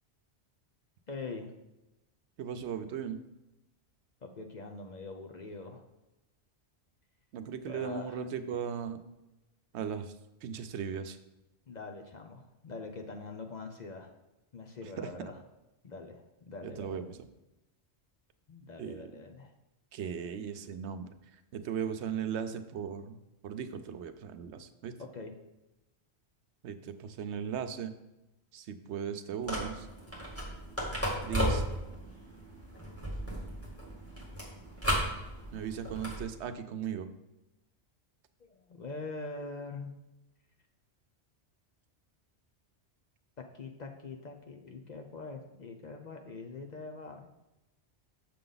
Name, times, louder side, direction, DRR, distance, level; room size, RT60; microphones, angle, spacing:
voice 1, 1.1-1.5 4.2-5.8 7.7-8.2 11.7-14.1 14.5-15.4 15.8-17.1 18.5-19.5 25.0-25.4 38.4-39.9 43.4-47.3, left 3 dB, 45° left, 4 dB, 0.7 m, -43 dB
voice 2, 2.4-3.2 7.3-9.0 9.7-10.1 10.4-11.2 15.0-15.1 16.6-17.2 18.8-19.1 19.9-21.1 21.5-24.9 26.6-27.9 28.5-29.9 31.2-31.6 35.5-37.1, right 7 dB, 75° right, 9 dB, 0.9 m, -37 dB
sound 1, 29.4-36.3, equal, 10° left, 2.0 m, -35 dB
6.8 x 6.8 x 3.9 m, 0.96 s
omnidirectional pair, 1.2 m